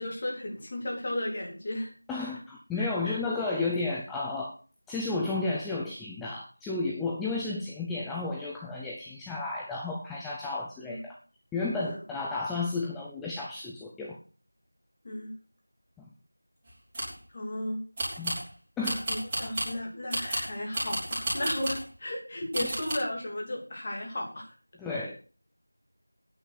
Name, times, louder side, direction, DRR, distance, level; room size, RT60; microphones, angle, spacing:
voice 1, 0.0-1.9 2.8-3.2 10.8-11.0 11.8-12.0 15.0-15.3 17.3-17.8 19.1-24.5 24.9-25.0, left 1 dB, 25° left, 0 dB, 2.8 m, -35 dB
voice 2, 2.1-4.5 4.9-11.2 11.5-14.2 16.0-16.1 18.2-18.4 18.8-19.1 19.4-19.5 24.8-25.2, left 3 dB, 5° left, -3 dB, 0.5 m, -32 dB
sound 1, 16.7-17.2 18.0-18.5 18.8-19.8 20.1-21.9 22.5-22.9, right 1 dB, 15° right, 4.3 m, -32 dB
9.6 x 7.9 x 7.9 m, 0.38 s
figure-of-eight pair, 175°, 0 cm